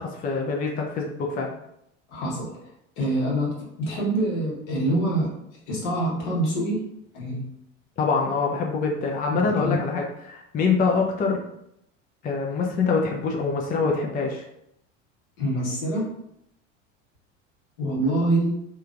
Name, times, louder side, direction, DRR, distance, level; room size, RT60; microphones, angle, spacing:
voice 1, 0.0-1.5 8.0-11.4 12.2-14.4, left 4 dB, 25° left, 0 dB, 0.4 m, -25 dB
voice 2, 2.1-2.5 3.0-5.3 5.7-6.8 7.1-7.5 9.3-9.8 15.4-16.1 17.8-18.5, right 1 dB, 70° left, -5 dB, 1.3 m, -25 dB
2.9 x 2.3 x 2.5 m, 0.78 s
hypercardioid pair, 75°, 37 cm